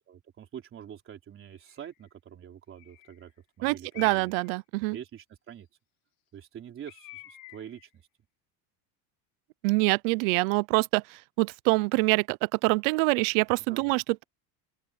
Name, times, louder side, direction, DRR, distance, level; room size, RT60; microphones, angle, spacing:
voice 1, 0.0-3.3 3.6-4.3 4.9-5.7 6.3-7.9 13.7-13.9, right 9 dB, 25° right, 4.0 m, -45 dB
Bird, 1.5-2.0 2.7-3.3 3.9-4.5 6.9-7.9, left 18 dB, 45° left, 3.5 m, -49 dB
voice 2, 3.6-5.0 9.6-14.2, right 27 dB, 55° right, 0.5 m, -25 dB
open air
cardioid pair, 175°, 48 cm